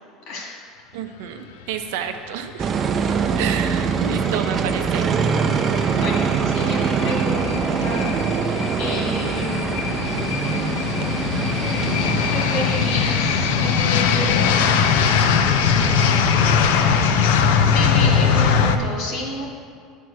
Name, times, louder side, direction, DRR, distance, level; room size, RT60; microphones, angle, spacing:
voice 1, 0.3-0.6 5.5-5.7 6.0-8.2 8.8-9.9 11.4-11.6 12.3-14.8 17.7-19.5, left 1 dB, 60° left, -1 dB, 2.0 m, -30 dB
voice 2, 0.9-2.7 3.4-5.1, right 8 dB, 85° right, 6 dB, 0.6 m, -30 dB
sound 1, 2.6-18.8, right 6 dB, 30° right, 0.4 m, -25 dB
sound 2, 3.0-18.8, left 7 dB, 90° left, 0.5 m, -21 dB
8.3 x 4.6 x 6.2 m, 2.1 s
cardioid pair, 145°, 0 cm